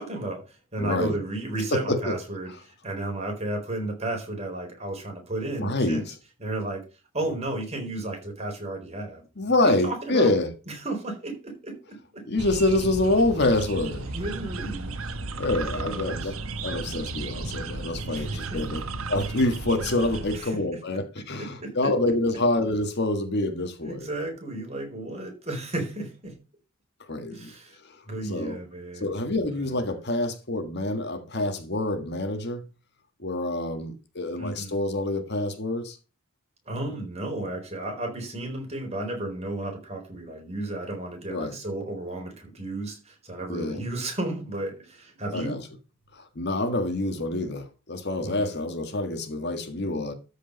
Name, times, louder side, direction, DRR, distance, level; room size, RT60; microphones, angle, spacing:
voice 1, 0.0-6.0 6.4-6.8 7.1-9.2 9.6-10.4 10.7-12.3 14.1-15.0 15.3-16.4 18.1-18.8 20.3-20.6 21.4-21.9 23.8-26.4 27.3-27.8 28.1-29.1 29.5-29.8 34.4-34.8 36.7-45.6 48.2-48.5, right 2 dB, 30° right, 4.0 m, -33 dB
voice 2, 0.8-1.1 1.7-2.2 5.6-6.1 9.4-10.5 12.3-14.1 15.4-16.3 16.6-18.8 19.1-24.1 27.1-27.5 27.8-28.6 29.0-32.6 33.2-36.0 41.3-41.6 43.5-43.8 45.3-45.6 46.1-50.1, left 2 dB, 50° left, 1.6 m, -26 dB
sound 1, 12.4-20.4, right 3 dB, 80° right, 1.2 m, -34 dB
13.0 x 5.1 x 5.2 m
head